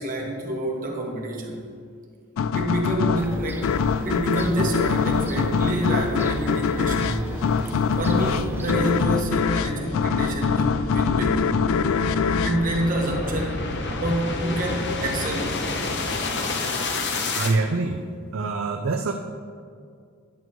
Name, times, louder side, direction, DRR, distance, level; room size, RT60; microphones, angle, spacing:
voice 1, 0.0-1.6 2.5-3.8 4.0-7.3 8.0-11.5 12.4-15.6, right 1 dB, 40° right, 0 dB, 1.3 m, -27 dB
sound 1, 2.4-13.6, left 6 dB, 90° left, 0.3 m, -24 dB
Fowl / Gull seagull, 3.2-9.0, right 1 dB, 10° right, 0.5 m, -34 dB
sound 2, 6.8-17.6, left 2 dB, 55° left, 0.8 m, -30 dB
voice 2, 17.3-18.0 18.3-19.1, right 3 dB, 70° right, 4 dB, 0.5 m, -25 dB
10.5 x 9.2 x 3.1 m, 2.2 s
head